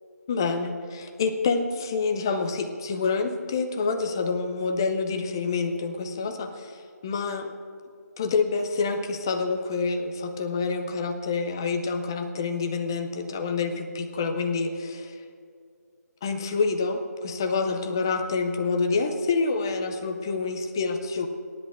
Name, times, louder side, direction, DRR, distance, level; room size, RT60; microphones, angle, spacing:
voice 1, 0.3-6.7 7.0-7.5 8.2-15.1 16.2-21.3, left 4 dB, 15° left, 6 dB, 0.4 m, -27 dB
24.5 x 10.5 x 2.5 m, 2.4 s
figure-of-eight pair, 160°, 9 cm